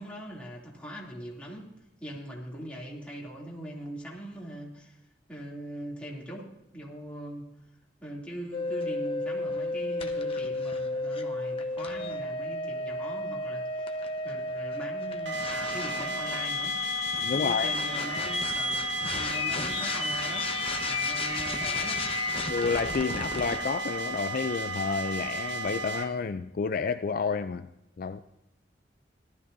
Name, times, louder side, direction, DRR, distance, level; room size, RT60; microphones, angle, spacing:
voice 1, 0.0-7.5 8.0-16.7 17.4-20.5 20.8-22.0, equal, 5° left, 2.8 m, -41 dB
sound 1, 8.5-23.6, left 3 dB, 30° left, 1.0 m, -32 dB
sound 2, 15.3-26.0, right 2 dB, 70° right, 1.5 m, -34 dB
voice 2, 17.2-17.7 22.4-27.7 28.0-28.2, left 5 dB, 50° left, 0.4 m, -30 dB
18.0 x 12.5 x 2.7 m
head